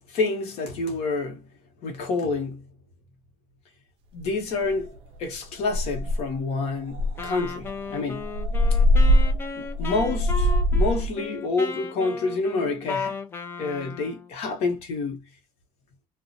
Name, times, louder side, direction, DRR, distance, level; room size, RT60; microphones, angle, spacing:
voice 1, 0.1-1.4 1.8-2.6 4.1-4.9 5.2-8.2 9.5-13.1 13.6-15.2, left 3 dB, 50° left, 0.9 m, -28 dB
sound 1, 4.2-4.3 4.7-5.0 5.3-5.4 5.7-6.4 6.9-11.1, left 1 dB, 45° right, 0.5 m, -22 dB
Wind instrument woodwind instrument, 7.2-14.3, left 4 dB, 15° left, 0.3 m, -35 dB
2.5 x 2.1 x 2.6 m
cardioid pair, 180°, 14 cm